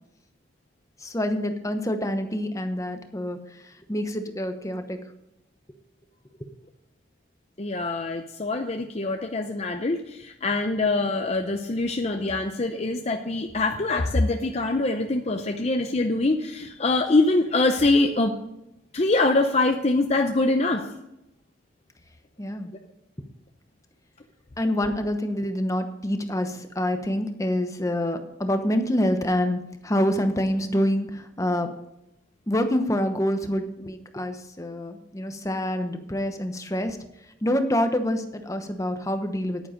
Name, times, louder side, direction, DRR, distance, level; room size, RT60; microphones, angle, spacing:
voice 1, 1.0-3.4 3.6-5.0 22.4-22.7 24.6-31.7 32.5-37.0 37.4-39.6, left 1 dB, 15° left, 7 dB, 1.0 m, -26 dB
voice 2, 7.6-18.3 18.9-20.9, left 2 dB, 35° left, 5 dB, 0.6 m, -24 dB
10.5 x 9.3 x 5.1 m, 0.89 s
head